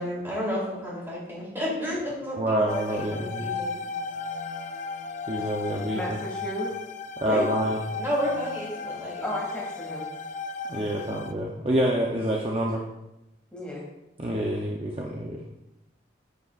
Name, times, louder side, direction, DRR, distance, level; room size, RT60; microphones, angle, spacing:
voice 1, 0.0-3.8 7.2-7.5 8.0-9.2 10.8-11.2, equal, 15° right, -6 dB, 3.1 m, -31 dB
voice 2, 2.4-3.5 5.3-6.0 7.2-7.8 10.7-12.8 14.2-15.4, right 1 dB, 30° right, -1 dB, 0.7 m, -27 dB
sound 1, 2.7-11.3, left 4 dB, 40° left, 0.4 m, -35 dB
voice 3, 5.9-6.7 9.2-10.1 13.5-13.8, equal, 5° left, -5 dB, 2.3 m, -34 dB
10.0 x 8.2 x 2.5 m, 0.92 s
head